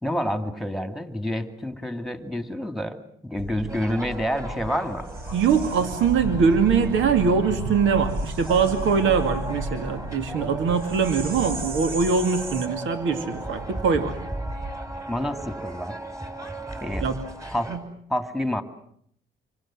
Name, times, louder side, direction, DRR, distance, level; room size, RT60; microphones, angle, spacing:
voice 1, 0.0-5.1 15.1-16.0 16.8-17.1 17.5-17.7 18.1-18.6, equal, ahead, 8 dB, 2.7 m, -28 dB
sound 1, 3.4-12.7, right 2 dB, 50° right, 3.7 m, -34 dB
sound 2, 3.7-17.8, right 1 dB, 15° right, 6.3 m, -37 dB
voice 2, 5.3-14.2 17.0-17.2 17.7-17.8, right 5 dB, 75° right, 7 dB, 2.5 m, -22 dB
27.5 x 24.0 x 7.7 m, 0.67 s
cardioid pair, 90°, 20 cm